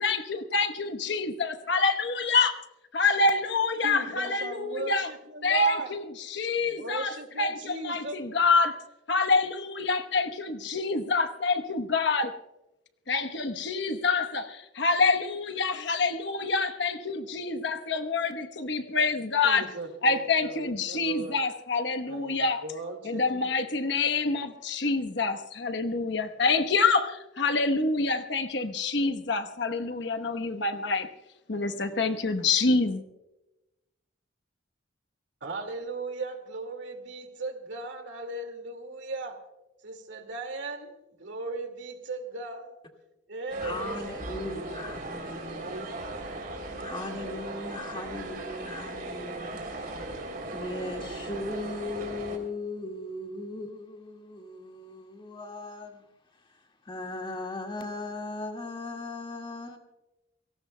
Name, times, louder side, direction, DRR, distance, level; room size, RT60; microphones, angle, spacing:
voice 1, 0.0-2.6 2.9-5.1 5.4-8.8 9.1-12.4 13.1-19.6 20.0-22.6 23.0-31.1 31.5-33.0, left 3 dB, 60° left, 1.0 m, -27 dB
voice 2, 3.8-5.9 6.6-8.2 19.4-21.4 22.1-23.4 35.4-39.4 39.8-40.9 41.2-42.7 43.3-44.3 45.5-45.9, right 2 dB, 70° right, 2.1 m, -37 dB
sound 1, 43.5-52.4, right 2 dB, 50° right, 3.1 m, -38 dB
voice 3, 43.6-45.8 46.8-56.0 56.3-59.8, left 2 dB, 25° left, 1.9 m, -38 dB
29.5 x 18.0 x 2.2 m
head